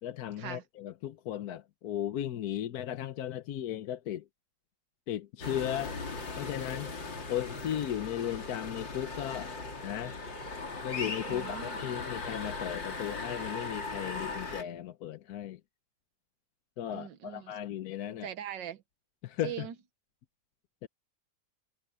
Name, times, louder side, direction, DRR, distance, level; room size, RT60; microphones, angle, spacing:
voice 1, 0.0-4.2 5.1-6.0 6.4-6.9 7.3-9.5 9.8-10.1 10.8-15.6 16.8-18.3 19.2-19.7 20.8-20.9, left 11 dB, 65° left, 1.2 m, -36 dB
sound 1, 5.4-14.6, left 3 dB, 90° left, 3.9 m, -38 dB
voice 2, 11.3-11.8 16.9-17.6 18.1-18.8 19.4-19.7, right 10 dB, 80° right, 1.8 m, -41 dB
omnidirectional pair, 1.9 m